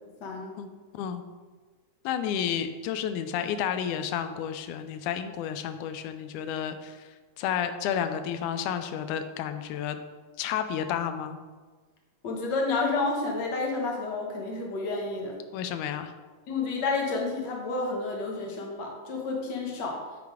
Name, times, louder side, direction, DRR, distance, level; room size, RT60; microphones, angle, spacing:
voice 1, 0.0-0.6 12.2-15.3 16.5-20.0, left 3 dB, 50° left, -1 dB, 1.3 m, -30 dB
voice 2, 0.6-1.2 2.1-7.1 7.4-10.0 10.4-11.4 15.5-16.1, left 9 dB, 90° left, 9 dB, 2.0 m, -31 dB
8.5 x 4.0 x 4.8 m, 1.4 s
omnidirectional pair, 3.5 m